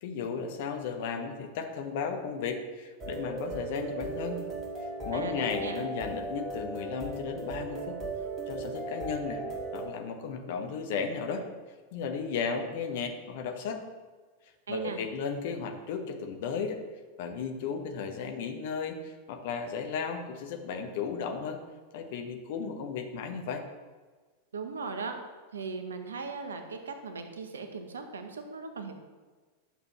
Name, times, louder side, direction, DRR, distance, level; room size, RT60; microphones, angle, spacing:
voice 1, 0.0-4.4 5.0-7.9 8.5-9.4 9.7-11.4 11.9-13.8 14.7-16.8 17.2-21.6 21.9-23.6, left 5 dB, 50° left, 5 dB, 1.1 m, -34 dB
sound 1, 3.0-9.9, right 2 dB, 20° right, 2.2 m, -37 dB
voice 2, 5.1-5.8 14.7-15.0 24.5-25.2 25.5-28.9, right 4 dB, 70° right, 6 dB, 1.0 m, -38 dB
11.5 x 6.7 x 3.2 m, 1.4 s
figure-of-eight pair, 90°, 0 cm